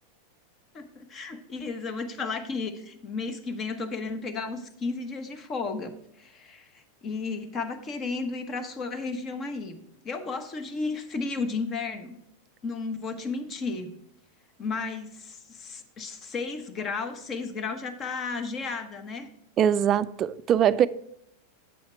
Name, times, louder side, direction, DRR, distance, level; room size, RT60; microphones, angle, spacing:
voice 1, 0.7-9.8 10.0-12.2 12.6-13.9 14.6-19.3, left 4 dB, 35° left, 1.0 m, -33 dB
voice 2, 19.6-20.9, right 9 dB, 35° right, 0.3 m, -22 dB
7.9 x 5.6 x 4.5 m
hypercardioid pair, 110°, 0 cm